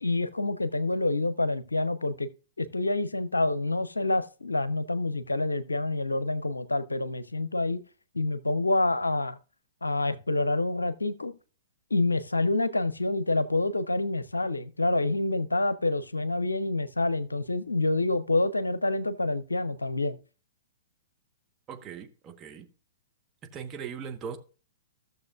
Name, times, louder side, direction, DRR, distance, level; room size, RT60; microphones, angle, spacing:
voice 1, 0.0-2.3 2.6-7.8 8.1-9.4 9.8-11.3 11.9-20.2, left 2 dB, 80° left, 0.6 m, -27 dB
voice 2, 21.7-22.6 23.5-24.4, right 7 dB, 25° right, 1.1 m, -39 dB
15.0 x 6.7 x 2.4 m
figure-of-eight pair, 110°, 0 cm